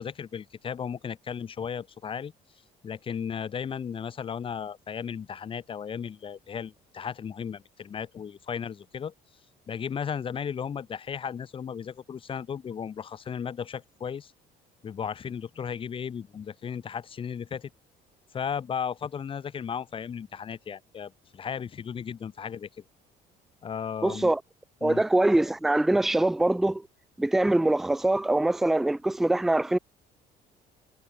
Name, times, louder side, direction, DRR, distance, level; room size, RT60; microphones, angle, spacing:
voice 1, 0.0-2.3 2.8-9.1 9.7-14.3 14.8-17.7 18.3-22.7 23.6-24.3 24.8-25.0, left 7 dB, 30° left, 2.4 m, -35 dB
voice 2, 24.0-24.4 24.8-26.8 27.2-29.8, right 2 dB, ahead, 0.4 m, -23 dB
cardioid pair, 145°, 16 cm